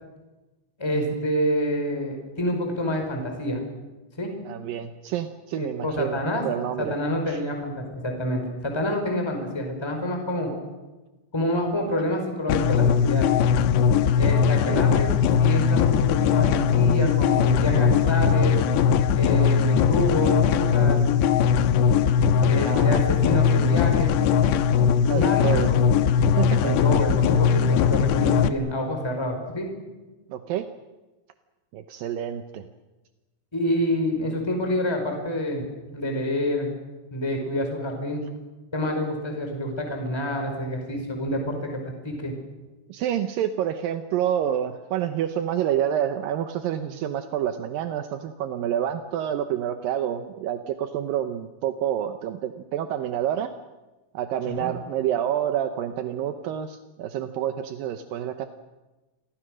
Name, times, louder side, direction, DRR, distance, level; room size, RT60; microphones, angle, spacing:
voice 1, 0.8-3.6 4.2-4.3 5.5-6.4 6.8-10.5 11.3-13.3 14.2-18.6 19.1-21.0 22.4-24.2 25.1-25.8 26.6-29.7 33.5-35.7 35.9-36.7 37.1-38.2 38.7-42.3 54.5-54.7, left 1 dB, 5° left, 3 dB, 4.2 m, -27 dB
voice 2, 4.5-7.0 7.3-7.4 14.3-14.9 19.3-19.6 22.4-23.0 25.1-25.7 26.4-26.8 30.3-30.7 31.7-32.6 42.9-53.5 54.1-58.5, right 10 dB, 75° right, 8 dB, 2.1 m, -28 dB
sound 1, 12.5-28.5, left 7 dB, 75° left, 3.1 m, -20 dB
29.5 x 23.5 x 6.4 m, 1.1 s
omnidirectional pair, 5.3 m